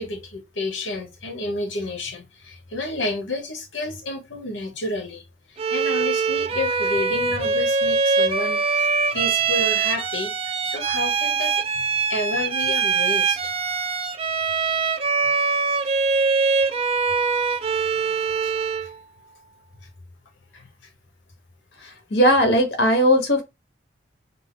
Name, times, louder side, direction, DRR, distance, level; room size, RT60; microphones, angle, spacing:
voice 1, 0.0-13.5 18.4-18.5 18.8-18.9 20.5-20.7, left 2 dB, 85° left, 0.9 m, -31 dB
Bowed string instrument, 5.6-18.9, right 5 dB, 30° right, 0.4 m, -23 dB
voice 2, 22.1-23.4, equal, 60° left, 1.2 m, -17 dB
5.9 x 2.0 x 3.7 m
head